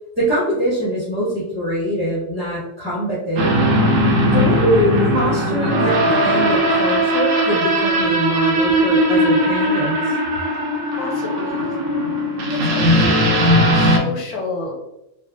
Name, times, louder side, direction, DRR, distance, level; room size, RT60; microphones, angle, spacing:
voice 1, 0.2-3.6 4.3-10.1, equal, 10° right, -10 dB, 1.3 m, -23 dB
sound 1, 3.4-14.0, equal, 80° right, 1.0 m, -18 dB
voice 2, 11.0-11.7 12.5-14.7, left 2 dB, 40° left, 0 dB, 0.5 m, -30 dB
3.2 x 2.2 x 2.6 m, 0.89 s
omnidirectional pair, 1.3 m